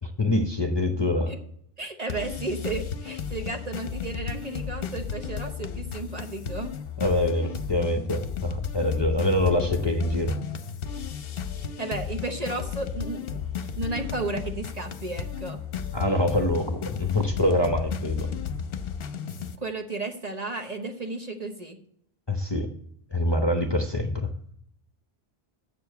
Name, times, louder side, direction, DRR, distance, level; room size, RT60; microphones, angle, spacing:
voice 1, 0.0-1.3 7.0-10.3 15.9-18.3 22.3-22.7 23.1-24.3, left 1 dB, 25° left, 4 dB, 0.8 m, -25 dB
voice 2, 1.8-6.7 11.8-15.6 19.3-21.8, right 3 dB, 40° right, 5 dB, 0.9 m, -33 dB
sound 1, 2.1-19.6, left 7 dB, 65° left, 0.9 m, -34 dB
7.7 x 6.9 x 6.7 m, 0.69 s
omnidirectional pair, 1.1 m